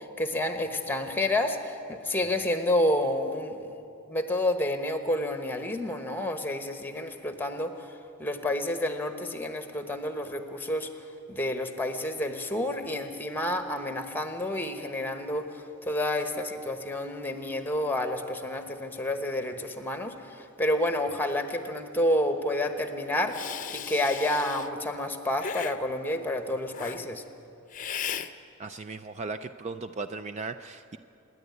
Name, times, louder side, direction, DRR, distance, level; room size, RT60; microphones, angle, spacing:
voice 1, 0.0-3.6 4.1-7.7 8.2-10.9 11.3-27.2, left 1 dB, 10° left, 7 dB, 1.1 m, -29 dB
Hiss, 23.3-24.7 25.4-25.8 26.7-27.0 27.7-28.3, left 7 dB, 35° left, 0.6 m, -36 dB
voice 2, 28.6-31.0, right 3 dB, 30° right, 10 dB, 0.4 m, -37 dB
26.5 x 10.5 x 9.5 m, 2.7 s
head